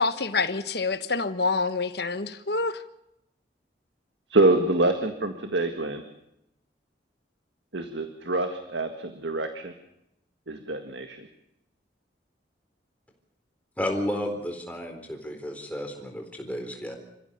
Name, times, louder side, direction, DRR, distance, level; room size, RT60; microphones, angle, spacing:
voice 1, 0.0-2.8, left 3 dB, 60° left, 1.4 m, -27 dB
voice 2, 4.3-6.0 7.7-9.7 10.5-11.3, right 2 dB, 85° right, 1.9 m, -25 dB
voice 3, 13.8-17.0, left 1 dB, 10° left, 4.1 m, -32 dB
27.5 x 15.5 x 7.0 m
head